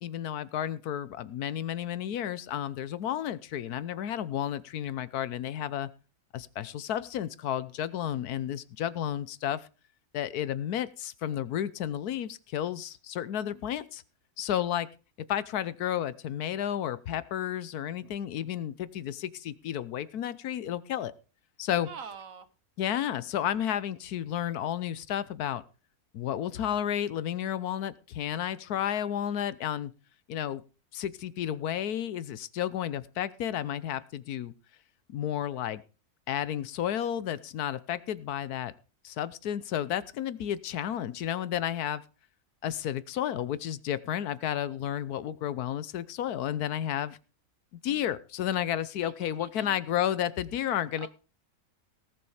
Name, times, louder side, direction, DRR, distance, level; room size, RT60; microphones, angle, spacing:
voice 1, 0.0-5.9 6.3-9.6 10.1-14.0 14.4-14.9 15.3-21.1 21.6-21.9 22.8-25.6 26.1-29.9 30.3-30.6 30.9-34.5 35.1-35.8 36.3-38.7 39.0-42.0 42.6-47.2 47.8-51.1, left 10 dB, 85° left, 17 dB, 1.3 m, -32 dB
voice 2, 21.9-22.5 49.0-49.8 51.0-51.1, right 6 dB, 65° right, 12 dB, 1.5 m, -45 dB
18.5 x 7.0 x 4.9 m, 0.34 s
omnidirectional pair, 1.6 m